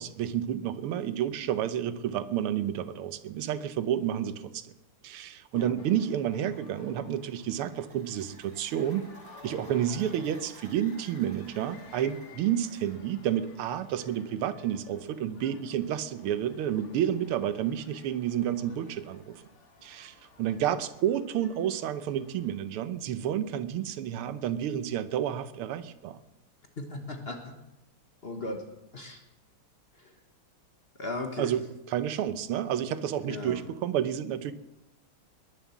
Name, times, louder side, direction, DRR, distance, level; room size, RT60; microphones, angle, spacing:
voice 1, 0.0-4.7 5.0-9.1 9.4-19.4 19.8-26.2 31.4-31.6 31.9-34.5, right 10 dB, 85° right, 13 dB, 1.7 m, -30 dB
sound 1, 5.8-22.6, left 4 dB, 85° left, 2.6 m, -55 dB
sound 2, 7.2-13.4, right 4 dB, 50° right, 2.0 m, -57 dB
voice 2, 26.8-27.6 28.2-28.7 28.9-29.2 29.9-30.2 31.0-31.5 33.3-33.7, left 2 dB, 35° left, 4 dB, 1.2 m, -37 dB
20.5 x 7.4 x 7.2 m, 0.93 s
omnidirectional pair, 2.4 m